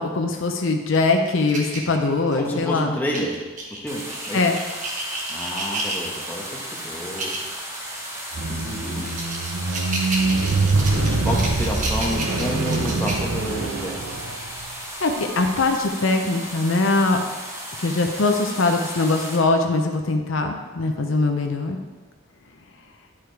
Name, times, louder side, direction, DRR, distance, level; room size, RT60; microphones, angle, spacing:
voice 1, 0.0-2.9 4.3-4.6 15.0-17.2 17.8-21.8, left 3 dB, 65° left, 4 dB, 0.7 m, -22 dB
sound 1, 0.9-2.5 3.1-6.3 7.0-7.5 7.9-8.0 8.6-13.6, right 2 dB, 40° right, 1.3 m, -32 dB
voice 2, 2.3-3.3 3.8-4.4 5.3-7.3 8.5-9.1 10.9-14.0, equal, 10° left, -3 dB, 1.2 m, -30 dB
sound 2, 3.9-19.4, equal, 15° right, 1.2 m, -35 dB
Squeak, 8.3-14.7 15.5-15.6, right 3 dB, 80° right, 0.8 m, -24 dB
10.5 x 4.9 x 4.6 m, 1.3 s
head